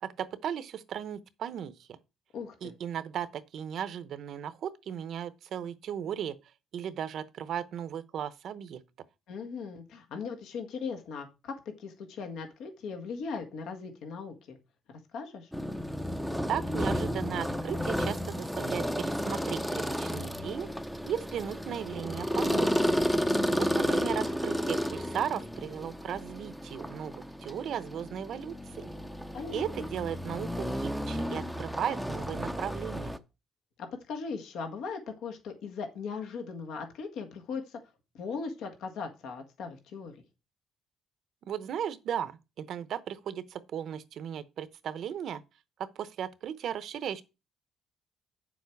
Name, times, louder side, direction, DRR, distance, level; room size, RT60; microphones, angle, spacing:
voice 1, 0.0-2.0 2.6-6.4 6.7-8.8 16.5-20.7 21.0-23.0 23.5-28.9 29.5-33.2 41.5-42.3 42.6-45.4 45.8-47.2, right 9 dB, 60° right, 0.8 m, -36 dB
voice 2, 2.3-2.7 9.3-14.6 14.9-15.5 23.3-23.9 29.3-29.9 33.8-37.8 38.1-40.1, left 5 dB, 75° left, 1.6 m, -39 dB
sound 1, 15.5-33.2, equal, ahead, 0.6 m, -32 dB
8.8 x 7.1 x 4.6 m
cardioid pair, 155°, 0 cm